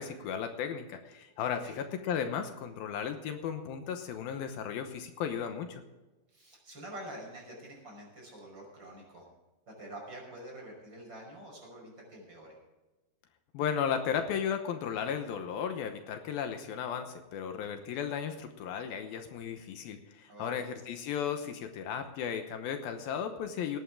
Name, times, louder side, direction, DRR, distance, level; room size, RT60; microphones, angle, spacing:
voice 1, 0.0-5.8 13.5-23.8, left 7 dB, 75° left, 7 dB, 2.7 m, -35 dB
voice 2, 6.3-9.3 9.7-12.6 20.3-20.9, right 1 dB, 30° right, -1 dB, 6.0 m, -47 dB
18.5 x 11.5 x 3.7 m, 1.1 s
omnidirectional pair, 4.5 m